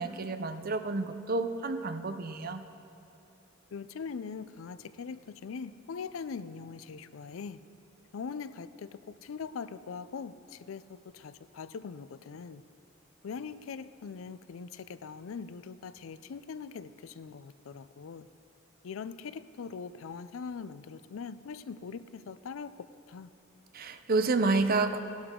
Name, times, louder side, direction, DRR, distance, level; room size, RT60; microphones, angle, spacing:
voice 1, 0.0-2.6 23.7-25.0, right 3 dB, 45° right, 9 dB, 0.7 m, -29 dB
voice 2, 3.7-7.6 8.1-8.9 9.2-10.3 10.7-12.6 13.2-18.2 18.8-22.7 23.1-23.3, left 5 dB, 80° left, 14 dB, 0.4 m, -41 dB
17.5 x 11.5 x 3.7 m, 2.7 s
head